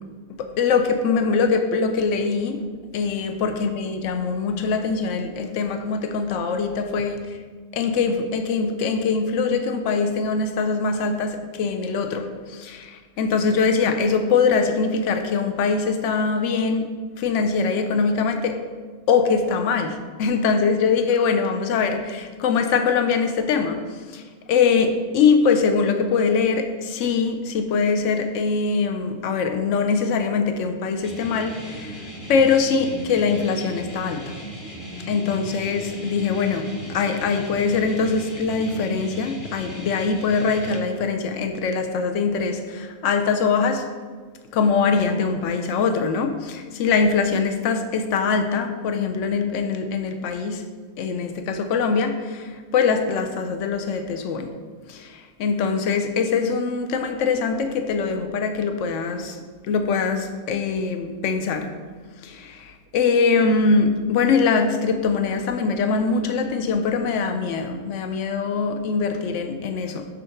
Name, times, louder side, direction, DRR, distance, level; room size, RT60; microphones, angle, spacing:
voice 1, 0.4-2.6 2.9-7.4 7.7-16.9 17.2-18.6 19.1-24.2 24.5-32.0 32.3-34.3 35.1-43.9 44.5-50.6 51.0-54.5 54.9-61.7 62.2-70.1, left 5 dB, 65° left, 7 dB, 0.9 m, -23 dB
sound 1, 31.0-40.8, right 1 dB, 25° left, 1.2 m, -36 dB
6.3 x 3.9 x 5.7 m, 1.5 s
omnidirectional pair, 1.5 m